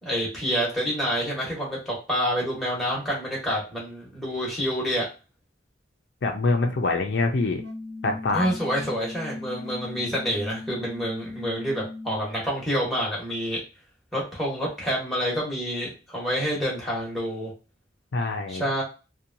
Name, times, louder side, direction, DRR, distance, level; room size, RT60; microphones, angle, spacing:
voice 1, 0.0-5.1 8.3-13.6 14.1-17.5 18.5-18.8, equal, ahead, -5 dB, 1.0 m, -28 dB
voice 2, 6.2-7.6 8.0-8.5 18.1-18.6, left 3 dB, 65° left, 4 dB, 0.4 m, -24 dB
sound 1, 7.5-12.4, left 2 dB, 80° right, 0.8 m, -38 dB
2.8 x 2.2 x 2.6 m, 0.32 s
head